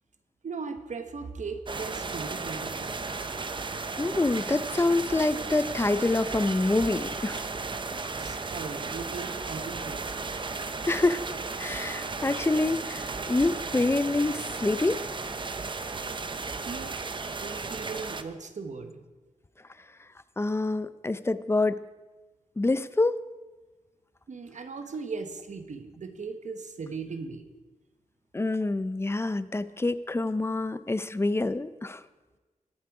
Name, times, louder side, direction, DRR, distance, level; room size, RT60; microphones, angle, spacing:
voice 1, 0.4-3.0 8.2-10.1 16.6-17.0 17.4-19.0 24.3-27.5, right 4 dB, 65° right, 8 dB, 1.2 m, -38 dB
sound 1, 1.7-18.2, right 4 dB, 35° right, 0.7 m, -35 dB
voice 2, 4.0-7.5 10.9-11.2 11.6-15.0 20.4-21.8 22.6-23.2 28.3-32.0, left 2 dB, 20° left, 15 dB, 0.5 m, -26 dB
22.5 x 7.5 x 4.8 m, 1.2 s
wide cardioid pair, 135°, 13 cm